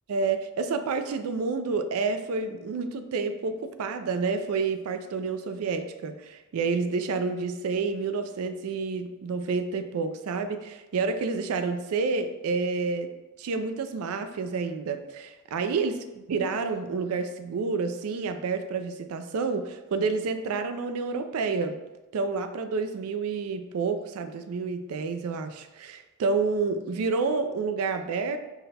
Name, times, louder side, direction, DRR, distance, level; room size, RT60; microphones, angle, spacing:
voice 1, 0.1-13.1 13.4-21.8 22.1-28.4, right 4 dB, 75° right, 8 dB, 0.4 m, -29 dB
5.8 x 2.2 x 4.0 m, 1.1 s
head